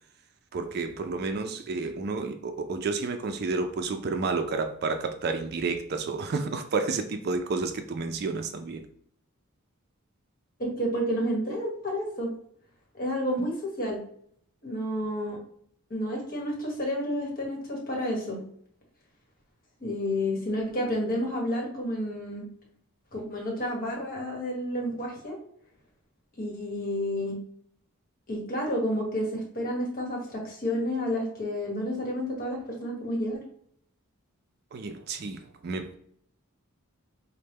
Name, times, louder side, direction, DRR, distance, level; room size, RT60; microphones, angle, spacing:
voice 1, 0.5-8.9 34.7-35.9, right 4 dB, 45° right, 7 dB, 0.4 m, -30 dB
voice 2, 10.6-12.3 12.9-14.0 14.6-15.4 15.9-18.4 19.8-22.5 23.1-25.4 26.4-27.4 28.3-33.4, equal, 40° left, -1 dB, 1.1 m, -30 dB
4.2 x 2.1 x 3.4 m, 0.65 s
head